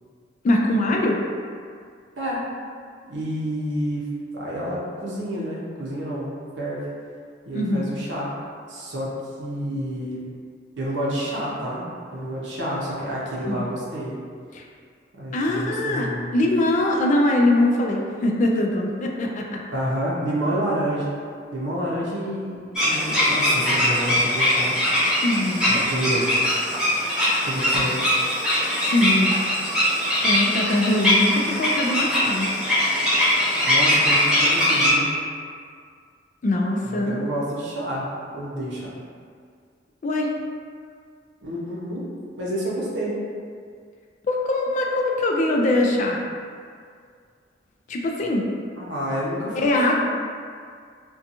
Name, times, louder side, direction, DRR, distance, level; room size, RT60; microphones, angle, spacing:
voice 1, 0.4-1.2 7.5-7.9 13.5-13.7 14.5-14.6 15.3-19.6 25.2-25.8 28.8-29.4 30.2-32.6 36.4-37.2 40.0-40.3 44.2-46.2 47.9-48.5 49.6-50.0, left 1 dB, 45° left, 0 dB, 0.3 m, -22 dB
voice 2, 3.1-6.9 7.4-8.3 8.7-10.2 10.8-14.1 15.1-16.3 19.7-21.1 21.5-24.7 25.7-26.3 27.4-28.0 33.6-35.1 36.8-38.9 41.4-42.0 42.3-43.2 48.8-50.0, right 1 dB, 75° right, -6 dB, 0.7 m, -29 dB
sound 1, 22.7-34.9, left 1 dB, 5° right, 0.8 m, -21 dB
2.7 x 2.2 x 2.6 m, 2.1 s
head